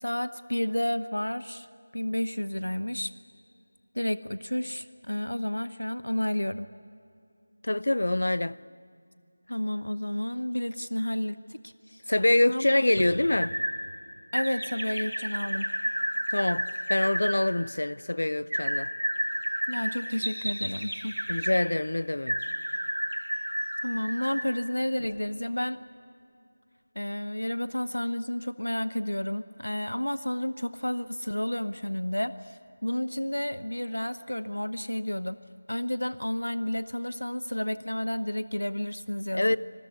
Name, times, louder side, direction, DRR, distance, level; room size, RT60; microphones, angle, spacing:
voice 1, 0.0-1.7 1.9-3.1 3.9-6.7 9.5-12.0 12.5-12.8 14.3-15.7 19.7-21.1 23.8-25.8 27.0-35.4 35.7-39.6, left 1 dB, 80° left, 0.9 m, -31 dB
voice 2, 7.6-8.6 12.1-13.5 16.3-18.9 21.3-22.4 39.3-39.6, left 1 dB, 60° left, 0.6 m, -25 dB
sound 1, 12.7-13.7 14.3-17.4 18.5-21.6 22.3-24.5 25.0-25.1, right 1 dB, 70° right, 6.1 m, -31 dB
27.0 x 20.0 x 9.5 m
figure-of-eight pair, 170°, 0 cm